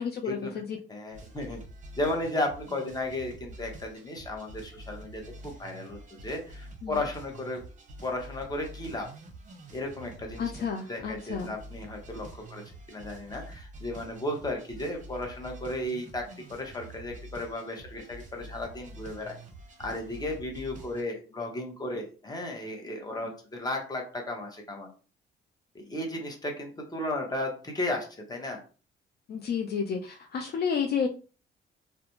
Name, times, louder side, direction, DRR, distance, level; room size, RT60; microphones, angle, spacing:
voice 1, 0.0-0.8 6.8-7.0 10.4-11.5 12.2-12.3 23.2-23.3 29.3-31.1, left 6 dB, 55° left, 4 dB, 0.4 m, -31 dB
voice 2, 0.9-1.6 1.9-7.6 8.0-9.1 9.7-12.6 12.9-19.3 19.8-24.9 25.7-28.6, left 1 dB, 20° left, 1 dB, 0.8 m, -34 dB
sound 1, 1.1-21.0, right 1 dB, 40° right, 0.7 m, -47 dB
2.4 x 2.2 x 2.9 m, 0.37 s
cardioid pair, 90°, 20 cm